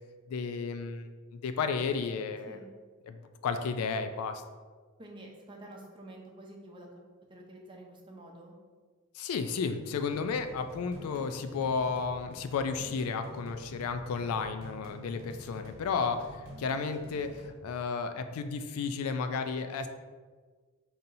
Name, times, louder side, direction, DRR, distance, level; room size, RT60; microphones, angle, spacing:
voice 1, 0.3-2.6 3.0-4.4 9.1-19.9, left 5 dB, 85° left, 8 dB, 0.3 m, -33 dB
voice 2, 5.0-6.9 7.3-8.6, right 1 dB, 25° right, 0 dB, 0.6 m, -49 dB
sound 1, 10.1-17.5, right 1 dB, 75° right, 0.9 m, -48 dB
5.3 x 2.8 x 2.6 m, 1.5 s
head